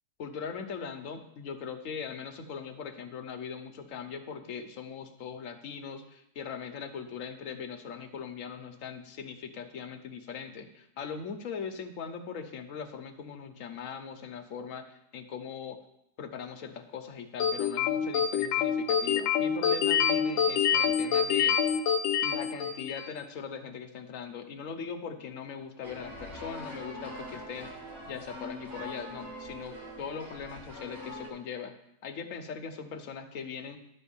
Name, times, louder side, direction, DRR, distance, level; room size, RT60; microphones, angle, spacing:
voice 1, 0.2-15.8 16.2-21.8 22.2-31.7 32.0-33.8, left 6 dB, 55° left, 6 dB, 1.1 m, -40 dB
sound 1, 17.4-23.1, left 8 dB, 85° left, 1.3 m, -26 dB
sound 2, 25.8-31.3, left 1 dB, 35° right, 2.4 m, -43 dB
10.5 x 4.5 x 7.1 m, 0.78 s
omnidirectional pair, 1.9 m